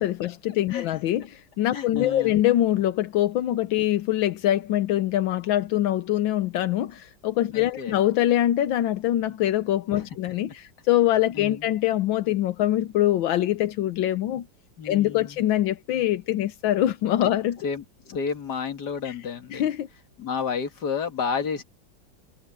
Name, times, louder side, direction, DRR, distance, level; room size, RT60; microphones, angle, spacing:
voice 1, 0.0-14.5 14.8-17.6 19.0-19.1 19.5-19.9, left 13 dB, 85° left, 1.6 m, -24 dB
voice 2, 1.7-2.4 7.5-8.0 9.9-10.1 11.3-11.7 14.8-15.4 17.6-19.7 20.2-21.6, left 6 dB, 60° left, 2.5 m, -31 dB
omnidirectional pair, 2.1 m